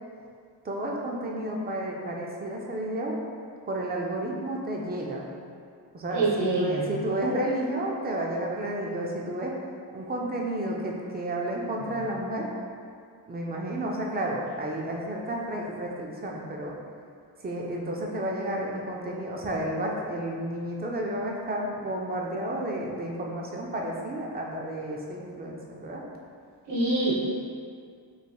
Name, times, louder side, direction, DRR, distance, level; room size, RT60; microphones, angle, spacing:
voice 1, 0.6-3.2 3.7-5.2 5.9-9.6 9.9-12.5 13.3-16.7 17.4-26.0, right 1 dB, 25° right, -1 dB, 0.4 m, -31 dB
voice 2, 6.1-6.9 26.7-27.2, right 2 dB, 70° right, -7 dB, 1.2 m, -25 dB
5.2 x 3.2 x 2.3 m, 2.2 s
wide cardioid pair, 170°, 43 cm